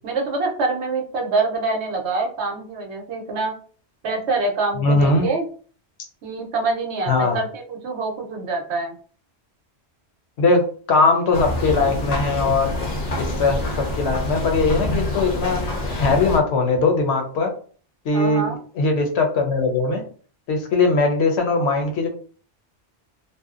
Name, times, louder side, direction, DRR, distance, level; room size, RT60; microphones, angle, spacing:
voice 1, 0.0-3.5 4.0-5.4 6.2-9.0 18.1-18.6, right 3 dB, 75° right, 1 dB, 0.9 m, -25 dB
voice 2, 4.8-5.3 7.1-7.4 10.4-10.6 10.9-12.8 13.2-15.6 16.0-17.5 18.0-20.0 20.5-22.1, left 3 dB, 75° left, 4 dB, 0.9 m, -20 dB
sound 1, 11.3-16.4, left 1 dB, 45° left, 0.6 m, -26 dB
2.7 x 2.0 x 2.3 m, 0.43 s
omnidirectional pair, 1.2 m